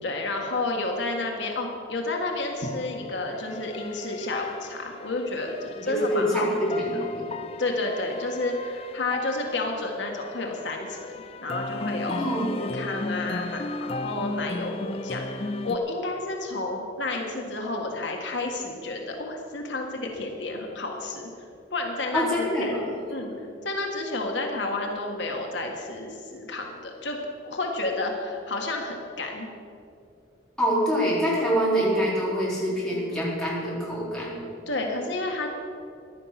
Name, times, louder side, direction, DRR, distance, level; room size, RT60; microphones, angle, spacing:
voice 1, 0.0-6.8 7.6-11.1 11.4-21.3 21.7-23.3 23.6-27.2 27.4-29.5 34.7-35.5, left 2 dB, 70° left, 1 dB, 1.6 m, -31 dB
sound 1, 2.6-15.8, left 2 dB, 30° left, 0.5 m, -36 dB
voice 2, 5.8-7.3 12.1-12.5 22.1-22.8 30.6-34.4, equal, 5° left, -7 dB, 4.2 m, -25 dB
15.5 x 11.5 x 5.9 m, 2.5 s
head